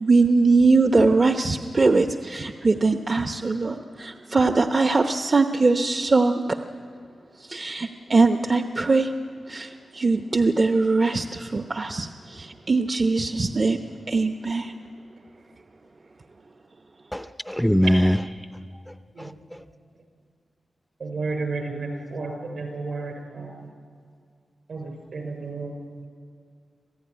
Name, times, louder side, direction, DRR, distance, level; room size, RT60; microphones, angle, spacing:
voice 1, 0.0-6.6 7.4-9.1 9.5-13.8 14.1-14.7, right 3 dB, 40° right, 0.8 m, -21 dB
voice 2, 17.1-18.2 18.9-19.6, equal, 5° left, 0.6 m, -23 dB
voice 3, 21.0-23.5 24.7-25.7, right 3 dB, 70° right, 5.7 m, -32 dB
26.5 x 16.0 x 9.6 m
wide cardioid pair, 110°, 0 cm